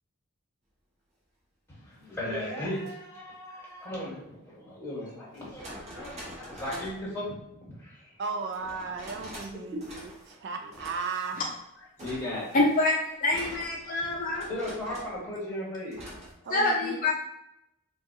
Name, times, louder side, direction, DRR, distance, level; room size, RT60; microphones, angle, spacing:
voice 1, 1.7-7.3 7.7-8.1 8.8-8.9 9.5-9.6 12.0-12.5 13.8-14.0 14.5-16.0, left 1 dB, 10° left, -6 dB, 1.2 m, -36 dB
sound 1, 2.7-2.9 4.5-4.6 5.3-7.1 8.5-9.5 9.8-10.4 10.7-11.6 12.0-15.2 15.9-16.3, equal, 30° right, 0.9 m, -45 dB
voice 2, 8.2-11.4 16.4-17.1, right 4 dB, 55° right, 4 dB, 0.3 m, -35 dB
voice 3, 12.5-14.5 16.5-17.1, left 2 dB, 40° left, -1 dB, 0.5 m, -26 dB
4.0 x 2.3 x 2.7 m, 0.84 s
head